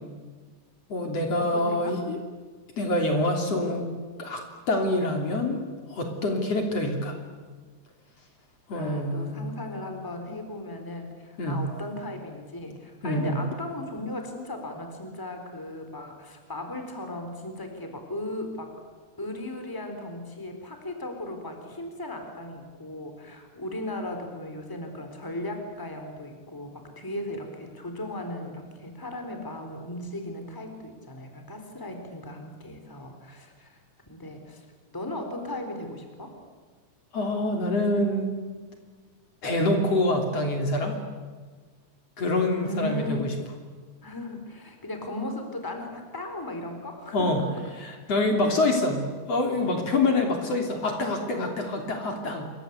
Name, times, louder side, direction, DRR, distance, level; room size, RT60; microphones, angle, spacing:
voice 1, 0.9-2.2 2.8-3.9 4.2-5.6 5.9-7.2 8.7-9.4 11.4-11.6 13.0-13.4 37.1-38.4 39.4-41.0 42.2-43.3 47.1-47.4 47.8-52.5, left 2 dB, 55° left, 3 dB, 4.2 m, -26 dB
voice 2, 1.5-2.0 8.7-18.7 19.2-34.7 34.9-36.3 42.6-43.4 44.0-47.5, left 1 dB, 5° left, 5 dB, 3.8 m, -37 dB
28.0 x 24.5 x 8.2 m, 1.5 s
omnidirectional pair, 3.5 m